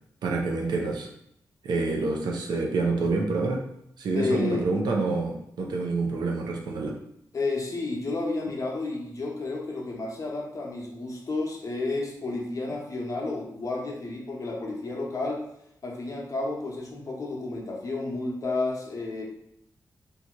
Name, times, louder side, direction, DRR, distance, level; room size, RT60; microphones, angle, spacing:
voice 1, 0.2-1.1 1.6-3.6 4.0-6.9, right 3 dB, 90° right, 1 dB, 0.5 m, -27 dB
voice 2, 4.1-4.7 7.3-15.4 15.8-19.2, left 3 dB, 50° left, -1 dB, 0.8 m, -31 dB
2.8 x 2.3 x 2.9 m, 0.76 s
cardioid pair, 70°, 7 cm